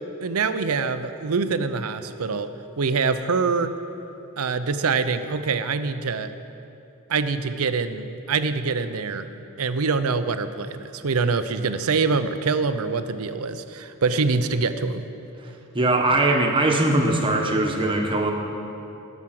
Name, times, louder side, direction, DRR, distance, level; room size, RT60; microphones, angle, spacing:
voice 1, 0.2-2.5 2.8-3.7 4.4-6.3 7.1-9.3 9.6-15.0, right 4 dB, 85° right, 11 dB, 0.6 m, -24 dB
voice 2, 15.7-18.3, right 2 dB, 25° right, 1 dB, 1.2 m, -21 dB
14.5 x 6.1 x 7.6 m, 2.9 s
head